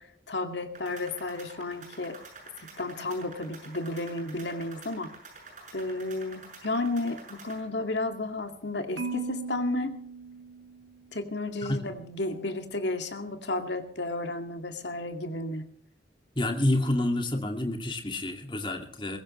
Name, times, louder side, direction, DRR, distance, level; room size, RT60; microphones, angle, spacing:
voice 1, 0.0-2.2 2.8-5.1 5.7-10.0 11.1-15.6, left 2 dB, 70° left, 6 dB, 2.3 m, -32 dB
sound 1, 0.7-7.6, right 3 dB, 40° right, 7.0 m, -48 dB
Marimba xylophone, 9.0-11.2, right 4 dB, 85° right, 2.7 m, -38 dB
voice 2, 16.4-19.2, left 1 dB, 25° left, 4 dB, 2.3 m, -28 dB
22.5 x 15.5 x 3.3 m, 0.62 s
head